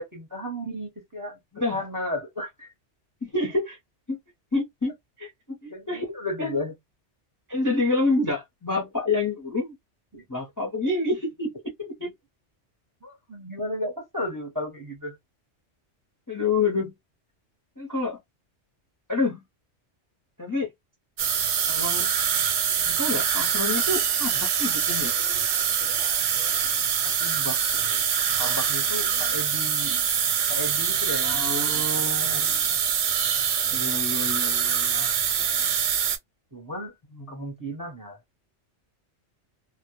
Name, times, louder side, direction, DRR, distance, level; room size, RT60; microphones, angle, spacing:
voice 1, 0.0-1.4 1.7-2.7 5.7-6.8 10.1-10.2 12.0-12.1 13.0-15.2 27.0-28.0 28.4-30.0 30.5-32.5 34.8-35.2 36.5-37.0 37.3-38.2, left 1 dB, 20° right, 0.6 m, -34 dB
voice 2, 3.2-3.8 4.1-4.2 4.5-4.9 5.2-6.5 7.5-9.7 10.3-11.5 11.8-12.1 16.3-16.9 17.8-18.2 19.1-19.4 20.4-20.7 21.7-22.1 22.8-25.1 31.2-32.7 33.7-35.1 37.1-37.6, left 3 dB, 20° left, 0.5 m, -28 dB
sound 1, 21.2-36.2, right 8 dB, 85° right, 0.9 m, -24 dB
2.1 x 2.1 x 2.9 m
omnidirectional pair, 1.2 m